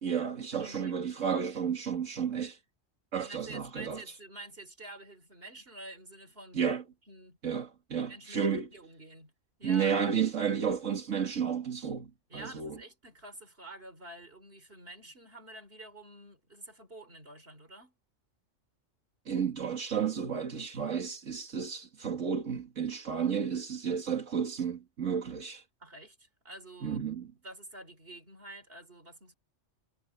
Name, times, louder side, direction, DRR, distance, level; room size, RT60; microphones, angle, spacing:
voice 1, 0.0-2.6 3.1-4.0 6.5-6.8 7.4-8.7 9.6-12.8 19.3-25.6 26.8-27.3, right 7 dB, 85° right, 2.2 m, -32 dB
voice 2, 0.6-1.0 3.2-6.7 7.1-7.4 8.0-9.3 9.6-10.0 12.3-18.0 25.8-27.0 27.4-29.4, right 2 dB, 50° right, 4.7 m, -48 dB
omnidirectional pair, 1.3 m